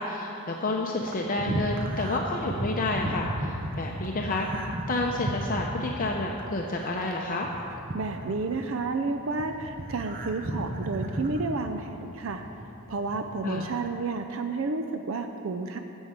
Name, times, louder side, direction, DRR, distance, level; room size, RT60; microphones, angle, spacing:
voice 1, 0.0-7.5 13.4-13.7, left 2 dB, 40° left, 0 dB, 0.6 m, -30 dB
sound 1, 1.0-8.8 9.1-12.6 13.0-13.9, right 1 dB, 40° right, 0.9 m, -34 dB
voice 2, 7.9-12.5 12.9-15.8, right 3 dB, 60° right, 6 dB, 0.5 m, -31 dB
9.1 x 6.3 x 8.0 m, 2.8 s
head